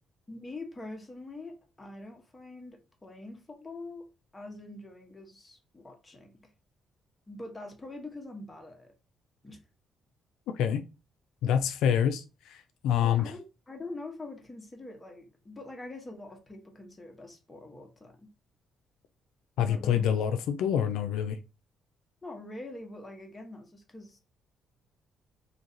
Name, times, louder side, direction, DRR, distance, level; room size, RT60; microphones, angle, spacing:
voice 1, 0.3-4.1 4.3-6.5 7.3-8.9 9.4-9.6 13.0-18.3 19.6-20.1 22.2-24.2, left 2 dB, 20° left, 1.2 m, -44 dB
voice 2, 11.4-12.6 12.8-13.3 19.6-21.4, left 9 dB, 90° left, 0.3 m, -26 dB
3.1 x 2.6 x 3.9 m
cardioid pair, 90°, 0 cm